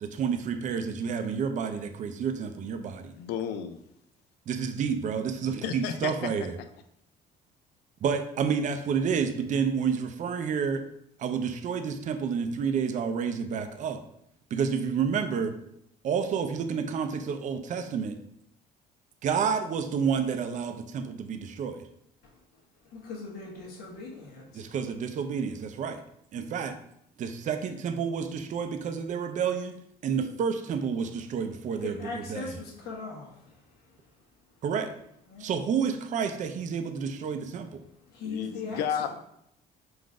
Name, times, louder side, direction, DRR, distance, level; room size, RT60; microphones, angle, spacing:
voice 1, 0.0-3.1 4.5-6.5 8.0-10.8 11.2-14.0 14.5-15.5 16.0-18.2 19.2-21.8 24.5-26.0 26.3-26.7 27.2-29.7 30.0-32.5 34.6-34.9 35.4-37.8, right 6 dB, 50° right, 7 dB, 0.5 m, -29 dB
voice 2, 3.2-3.8 5.6-6.3 38.2-39.1, left 8 dB, 85° left, 8 dB, 0.4 m, -32 dB
voice 3, 22.8-24.7 31.7-33.8 35.3-35.5 38.1-38.8, left 4 dB, 65° left, -3 dB, 1.2 m, -40 dB
3.8 x 2.6 x 4.7 m, 0.74 s
cardioid pair, 110°, 17 cm